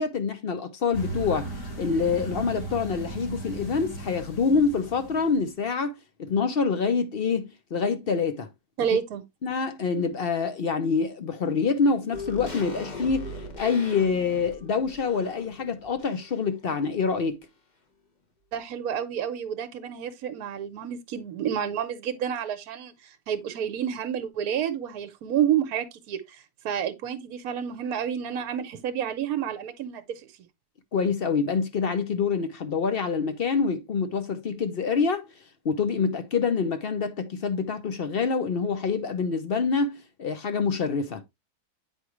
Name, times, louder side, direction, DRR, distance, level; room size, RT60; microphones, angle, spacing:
voice 1, 0.0-1.5 1.8-5.9 6.2-8.5 9.4-17.4 30.9-35.2 35.6-41.2, left 5 dB, 50° left, 0.7 m, -26 dB
sound 1, 0.9-5.5, right 1 dB, 85° left, 5.9 m, -36 dB
voice 2, 8.8-9.2 18.5-30.3, right 9 dB, 70° right, 1.2 m, -29 dB
sound 2, 12.1-16.6 16.9-17.0, left 2 dB, 35° left, 1.0 m, -40 dB
8.4 x 4.9 x 3.0 m
omnidirectional pair, 1.7 m